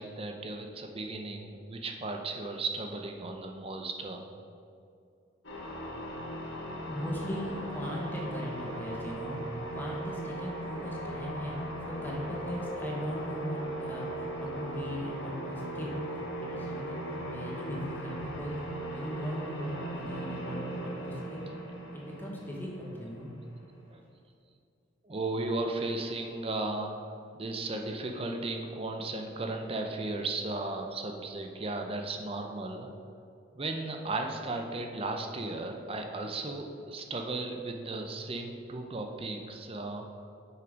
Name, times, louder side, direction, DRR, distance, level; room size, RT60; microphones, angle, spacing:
voice 1, 0.0-4.2 23.9-24.0 25.0-32.9 33.5-40.1, right 2 dB, 30° right, 4 dB, 0.6 m, -35 dB
sound 1, 5.4-23.8, right 1 dB, 70° left, 1.8 m, -38 dB
voice 2, 6.9-9.3 9.7-15.9 16.4-21.4 21.9-23.3, equal, 10° left, -3 dB, 1.1 m, -38 dB
6.4 x 6.0 x 5.0 m, 2.5 s
head